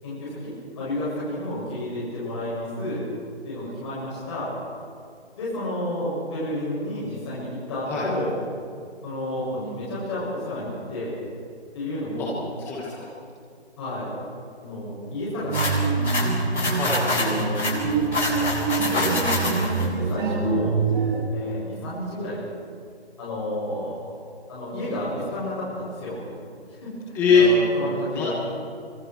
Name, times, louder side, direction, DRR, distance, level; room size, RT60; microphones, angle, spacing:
voice 1, 0.0-3.1 3.4-4.5 5.4-8.3 9.0-11.2 11.7-12.4 13.8-14.1 14.6-15.7 17.0-17.6 18.8-20.7 21.3-22.4 23.2-24.0 24.5-26.2 26.8-28.3, left 1 dB, 25° left, -8 dB, 7.8 m, -31 dB
voice 2, 12.6-13.1 16.7-17.0 27.1-27.5 28.1-28.3, left 7 dB, 5° left, -5 dB, 1.4 m, -21 dB
sound 1, 15.4-21.3, right 4 dB, 45° right, 6.4 m, -25 dB
sound 2, 15.5-19.9, left 2 dB, 80° left, 7.8 m, -26 dB
26.0 x 25.5 x 4.8 m, 2.2 s
figure-of-eight pair, 160°, 34 cm